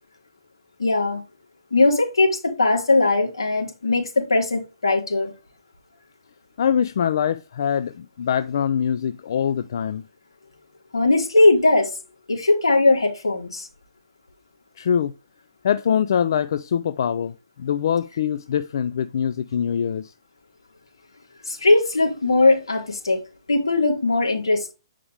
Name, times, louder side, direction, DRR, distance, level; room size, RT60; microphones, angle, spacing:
voice 1, 0.8-1.2 1.7-5.3 10.9-12.0 12.3-13.7 21.5-23.2 23.5-24.7, left 2 dB, 80° left, 3.0 m, -19 dB
voice 2, 6.6-10.0 14.8-15.1 15.6-17.3 17.6-20.1, left 8 dB, 60° left, 0.4 m, -23 dB
8.9 x 5.0 x 3.4 m
hypercardioid pair, 140°, 3 cm